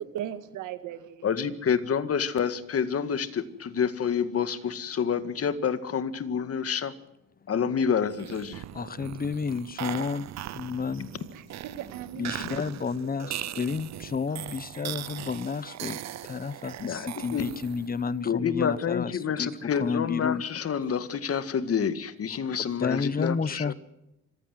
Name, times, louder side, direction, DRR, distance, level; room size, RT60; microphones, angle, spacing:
voice 1, 0.0-1.3 11.3-12.7 13.0-13.5, right 10 dB, 90° right, 2.0 m, -38 dB
voice 2, 1.2-6.9 7.5-8.6 16.8-17.5 18.2-23.7, left 7 dB, 50° left, 2.0 m, -28 dB
sound 1, 8.1-18.0, right 12 dB, 60° right, 0.8 m, -39 dB
voice 3, 8.7-11.2 12.1-20.4 22.8-23.7, left 5 dB, 30° left, 1.1 m, -31 dB
25.5 x 15.5 x 7.8 m
cardioid pair, 90°, 30 cm